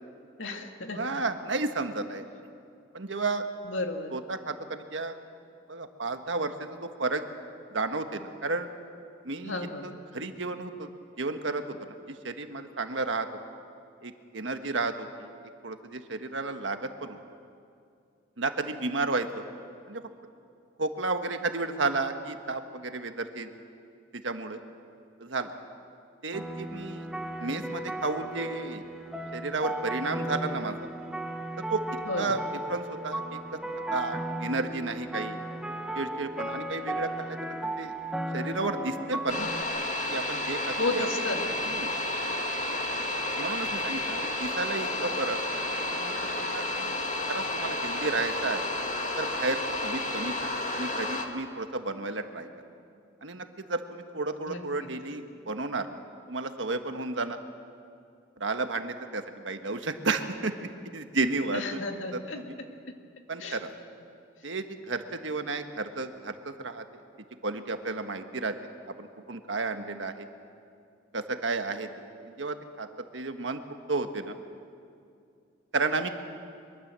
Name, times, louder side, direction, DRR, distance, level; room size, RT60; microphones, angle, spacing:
voice 1, 0.4-1.0 3.6-4.1 9.4-9.9 32.0-32.3 40.8-41.6 54.5-54.6 61.5-62.4 63.4-63.6, left 2 dB, 90° left, 4 dB, 2.2 m, -32 dB
voice 2, 0.9-2.2 2.9-3.4 4.1-5.2 5.7-7.2 7.7-8.7 9.2-9.6 9.8-10.9 11.2-11.8 12.2-13.3 14.0-15.3 15.6-17.2 18.4-19.4 19.9-20.0 20.8-23.5 24.2-24.6 25.2-25.5 26.2-27.1 27.4-28.8 29.3-30.9 31.7-31.8 32.2-32.4 32.7-33.2 33.9-35.4 35.9-37.9 38.3-39.5 40.1-41.1 41.7-41.9 43.4-45.4 45.9-48.6 49.2-50.3 50.7-52.5 53.2-56.0 56.3-57.4 58.4-61.8 62.1-62.6 63.3-63.7 64.4-66.8 67.4-68.5 69.0-70.3 71.1-71.9 72.2-72.9 73.1-73.6 73.9-74.3 75.7-76.1, right 3 dB, 75° right, 7 dB, 1.5 m, -32 dB
sound 1, 26.3-39.6, right 1 dB, 5° right, 1.3 m, -35 dB
sound 2, 39.3-51.3, left 1 dB, 40° left, 1.8 m, -31 dB
23.5 x 23.0 x 7.6 m, 2.4 s
head